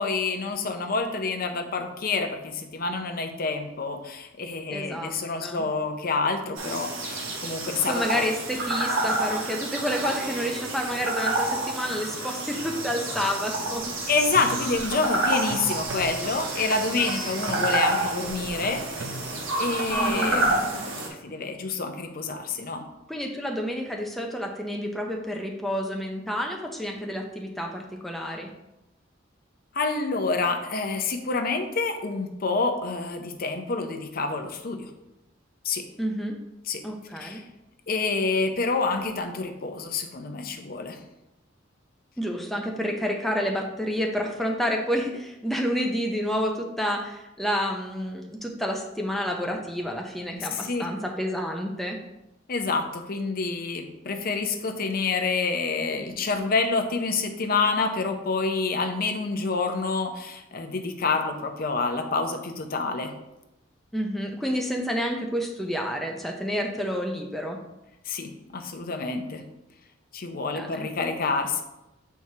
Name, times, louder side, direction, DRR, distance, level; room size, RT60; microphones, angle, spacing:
voice 1, 0.0-8.2 14.1-19.1 19.6-22.8 29.7-34.9 35.6-35.8 36.7-36.8 37.2-37.4 37.9-41.0 50.4-50.9 52.5-63.1 68.1-69.4 70.1-71.6, left 4 dB, 50° left, 5 dB, 0.6 m, -28 dB
voice 2, 4.7-5.1 5.4-5.6 7.9-13.9 20.0-20.4 23.1-28.5 36.0-36.4 36.8-37.4 42.2-52.0 63.9-67.6 70.5-70.9, equal, ahead, 0 dB, 0.5 m, -29 dB
sound 1, 6.6-21.1, right 2 dB, 90° right, 1.2 m, -29 dB
Plucked string instrument, 9.9-12.1 16.2-18.8, right 2 dB, 45° right, 0.9 m, -43 dB
sound 2, 13.8-20.6, right 4 dB, 70° right, 0.5 m, -40 dB
7.2 x 4.6 x 2.8 m, 0.92 s
head